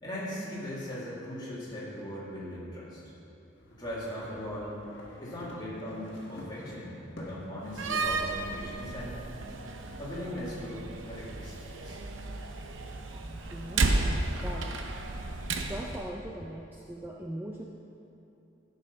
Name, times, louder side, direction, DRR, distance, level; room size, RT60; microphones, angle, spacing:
voice 1, 0.0-3.0 3.8-4.8 5.2-9.2 10.0-11.6 11.8-12.0, equal, 20° left, -8 dB, 2.4 m, -39 dB
sound 1, 3.6-7.6, equal, 70° left, 1.6 m, -47 dB
Slam, 7.6-16.1, right 3 dB, 80° right, 0.7 m, -33 dB
voice 2, 13.1-14.0 14.4-14.7 15.7-17.6, right 1 dB, 10° right, -2 dB, 0.4 m, -40 dB
12.5 x 5.6 x 5.5 m, 2.9 s
head